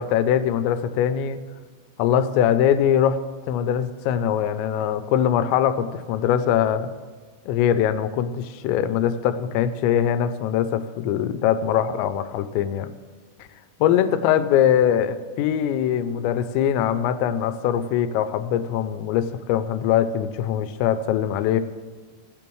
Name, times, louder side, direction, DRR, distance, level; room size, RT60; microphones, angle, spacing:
voice 1, 0.0-1.4 2.0-3.2 3.5-6.9 7.5-12.9 13.8-21.6, left 9 dB, 90° left, 12 dB, 2.8 m, -22 dB
16.0 x 8.6 x 3.1 m, 1.4 s
omnidirectional pair, 5.1 m